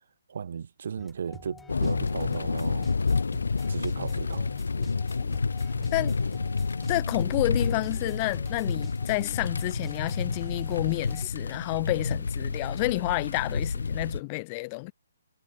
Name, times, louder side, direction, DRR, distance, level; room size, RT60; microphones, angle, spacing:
voice 1, 0.3-3.1 3.7-4.5, right 7 dB, 60° right, 2.8 m, -36 dB
sound 1, 1.0-11.3, left 4 dB, 5° left, 3.6 m, -48 dB
sound 2, 1.7-14.2, left 4 dB, 85° left, 2.0 m, -29 dB
voice 2, 6.9-14.9, left 28 dB, 30° left, 1.4 m, -30 dB
hypercardioid pair, 150°, 0 cm